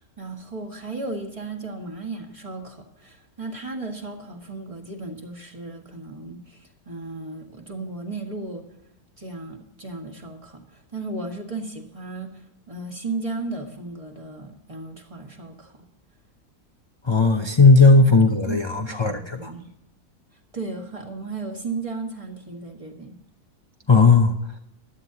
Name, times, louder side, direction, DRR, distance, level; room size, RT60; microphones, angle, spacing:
voice 1, 0.0-8.6 9.2-12.3 12.7-15.7 17.9-18.2 18.5-19.7 20.5-23.2, right 3 dB, 20° right, 2 dB, 1.8 m, -35 dB
voice 2, 17.0-19.5 23.9-24.4, left 3 dB, 30° left, 4 dB, 0.5 m, -16 dB
15.5 x 11.0 x 2.9 m, 0.84 s
omnidirectional pair, 1.6 m